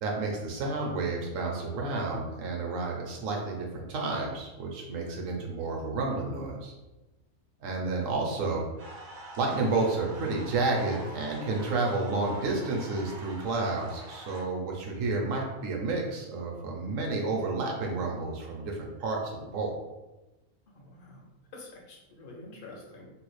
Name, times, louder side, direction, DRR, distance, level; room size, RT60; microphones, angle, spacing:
voice 1, 0.0-6.7 7.6-8.6 9.4-19.7, right 3 dB, 65° right, -1 dB, 1.1 m, -30 dB
sound 1, 8.8-14.4, right 1 dB, 45° right, 0.7 m, -45 dB
voice 2, 20.7-21.3 21.5-23.1, left 2 dB, 50° left, -1 dB, 0.7 m, -47 dB
3.1 x 2.3 x 3.1 m, 1.1 s
omnidirectional pair, 1.5 m